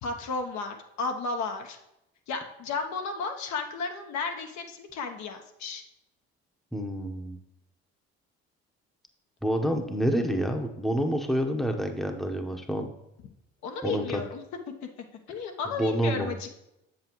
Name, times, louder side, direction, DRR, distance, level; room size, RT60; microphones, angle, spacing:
voice 1, 0.0-1.8 2.3-5.8 13.6-14.4 15.3-16.5, left 4 dB, 60° left, 4 dB, 1.0 m, -33 dB
voice 2, 6.7-7.4 9.4-12.9 13.8-14.2 15.7-16.3, equal, ahead, 4 dB, 1.0 m, -28 dB
7.4 x 7.3 x 3.0 m, 0.86 s
hypercardioid pair, 65°, 31 cm